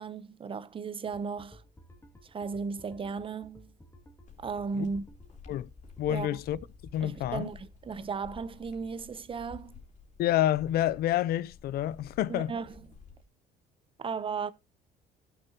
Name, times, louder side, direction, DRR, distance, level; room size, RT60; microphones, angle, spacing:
voice 1, 0.0-1.6 2.2-3.7 4.4-5.0 6.1-6.3 7.0-9.8 12.3-12.8 14.0-14.5, right 5 dB, 30° right, 0.8 m, -35 dB
sound 1, 1.0-7.4, equal, 15° left, 2.3 m, -55 dB
sound 2, 4.3-13.2, left 5 dB, 45° left, 3.6 m, -52 dB
voice 2, 6.0-6.6 6.9-7.5 10.2-12.5, left 12 dB, 65° left, 0.5 m, -28 dB
16.5 x 6.9 x 2.9 m
cardioid pair, 110°, 17 cm